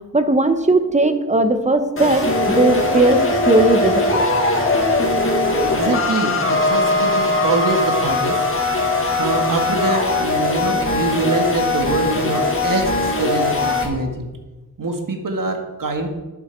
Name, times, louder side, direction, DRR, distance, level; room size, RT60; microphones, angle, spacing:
voice 1, 0.1-4.3, right 2 dB, 20° right, 8 dB, 1.0 m, -17 dB
sound 1, 2.0-13.9, left 2 dB, 35° left, 1.9 m, -20 dB
voice 2, 5.7-8.5 9.2-14.3 14.8-16.1, right 2 dB, 60° right, 4 dB, 1.7 m, -24 dB
11.5 x 8.1 x 4.6 m, 1.2 s
wide cardioid pair, 95°, 37 cm